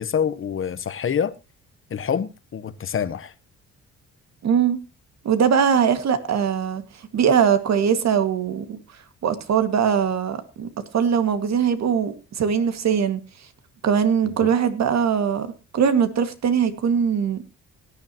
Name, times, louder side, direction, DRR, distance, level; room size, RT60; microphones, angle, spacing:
voice 1, 0.0-1.3 1.9-3.3 14.2-14.5, left 7 dB, 45° left, 1.2 m, -26 dB
voice 2, 4.4-4.8 5.2-6.8 7.1-8.8 9.2-13.2 13.8-17.4, right 7 dB, 60° right, 2.2 m, -21 dB
17.5 x 10.5 x 3.0 m
cardioid pair, 90°, 30 cm